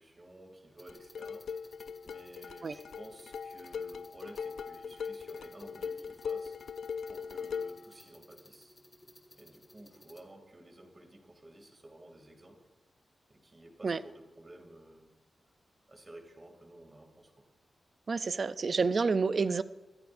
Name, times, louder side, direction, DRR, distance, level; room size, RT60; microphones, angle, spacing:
voice 1, 0.0-1.4 2.0-6.6 7.1-8.8 9.3-12.6 13.3-15.1 15.9-17.3, right 1 dB, 25° right, 3 dB, 2.8 m, -53 dB
sound 1, 0.8-10.2, left 1 dB, 15° left, 1.7 m, -58 dB
sound 2, 0.9-7.9, left 6 dB, 90° left, 0.5 m, -40 dB
voice 2, 18.1-19.6, right 4 dB, 40° right, 13 dB, 0.5 m, -29 dB
24.5 x 14.5 x 2.6 m, 1.1 s
wide cardioid pair, 155°, 0 cm